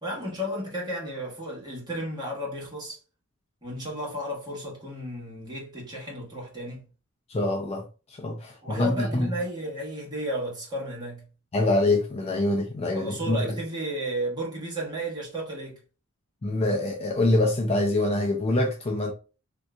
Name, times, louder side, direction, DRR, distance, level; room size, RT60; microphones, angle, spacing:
voice 1, 0.0-3.0 3.6-6.9 8.6-11.2 12.9-15.8, right 1 dB, 20° right, 1.5 m, -33 dB
voice 2, 7.3-7.8 8.2-9.3 11.5-13.4 16.4-19.1, left 2 dB, 30° left, 0.4 m, -25 dB
3.7 x 2.7 x 2.3 m
head